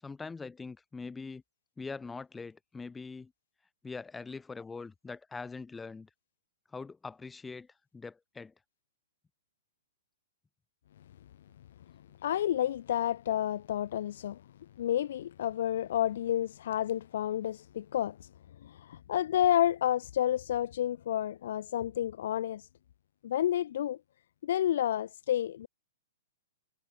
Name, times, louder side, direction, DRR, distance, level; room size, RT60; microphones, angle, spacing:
voice 1, 0.0-1.4 1.8-3.3 3.8-6.1 6.7-7.7 7.9-8.5, left 4 dB, 5° left, 1.2 m, -42 dB
voice 2, 12.2-14.4 14.8-18.3 18.6-22.7 23.2-24.0 24.4-25.7, left 11 dB, 55° left, 0.9 m, -30 dB
hypercardioid pair, 170°, 0 cm